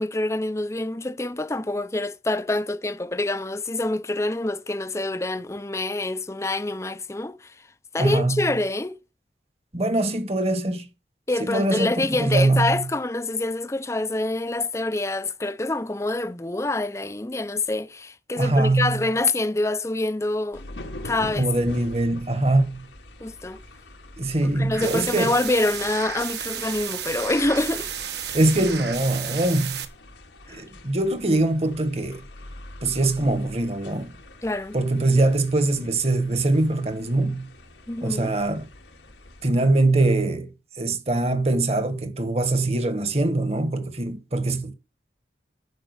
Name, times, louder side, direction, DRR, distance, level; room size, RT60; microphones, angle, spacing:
voice 1, 0.0-7.6 7.9-9.0 11.3-20.6 21.0-21.5 23.2-23.6 24.6-27.9 30.5-30.6 34.4-34.8 37.9-38.4, left 2 dB, 15° left, 0.6 m, -26 dB
voice 2, 8.0-8.5 9.7-10.9 11.4-12.8 18.4-19.0 21.4-22.9 24.2-25.4 28.3-29.8 30.5-32.2 32.8-34.1 34.7-37.5 38.0-38.7 39.4-40.5 40.8-44.7, right 2 dB, 35° right, 1.3 m, -23 dB
sound 1, 20.5-39.5, left 1 dB, 90° left, 2.1 m, -44 dB
sound 2, 24.7-29.8, right 9 dB, 70° right, 1.5 m, -33 dB
11.0 x 5.7 x 8.2 m
head